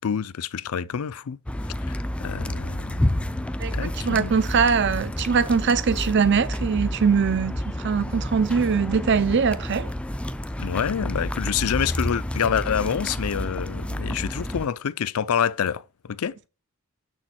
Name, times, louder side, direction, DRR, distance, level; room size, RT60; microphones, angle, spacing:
voice 1, 0.0-1.4 1.9-3.4 3.7-4.3 10.6-16.4, left 8 dB, 75° left, 0.5 m, -27 dB
sound 1, 1.5-14.7, left 1 dB, 5° left, 0.3 m, -30 dB
voice 2, 3.6-9.9, right 6 dB, 50° right, 0.5 m, -22 dB
6.8 x 6.4 x 4.3 m
head